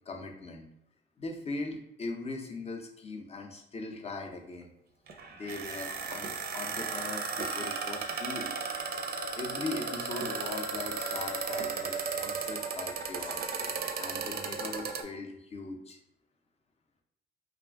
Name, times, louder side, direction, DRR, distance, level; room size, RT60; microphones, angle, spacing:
voice 1, 0.1-0.7 1.2-4.7 5.4-8.5 9.3-13.5 14.0-16.0, left 3 dB, 30° left, 2 dB, 0.6 m, -40 dB
sound 1, 5.1-15.0, right 5 dB, 50° right, 0.4 m, -35 dB
2.4 x 2.2 x 3.3 m, 0.80 s
cardioid pair, 90°, 20 cm